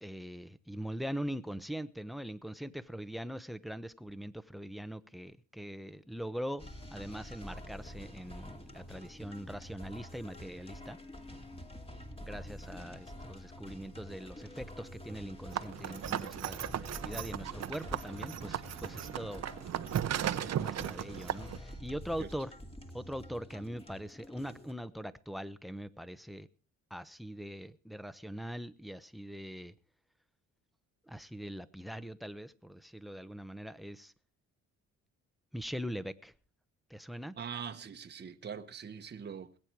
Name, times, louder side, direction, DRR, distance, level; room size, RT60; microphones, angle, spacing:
voice 1, 0.0-6.6 6.9-11.0 12.2-19.4 20.4-22.5 22.9-26.5 26.9-29.7 31.1-34.1 35.5-36.3 36.9-37.3, equal, ahead, 0.9 m, -42 dB
sound 1, 6.6-24.7, left 1 dB, 20° left, 2.5 m, -48 dB
sound 2, 15.5-21.6, right 11 dB, 60° right, 0.8 m, -36 dB
voice 2, 37.4-39.6, right 7 dB, 35° right, 1.1 m, -42 dB
20.5 x 8.9 x 4.7 m
cardioid pair, 90°, 30 cm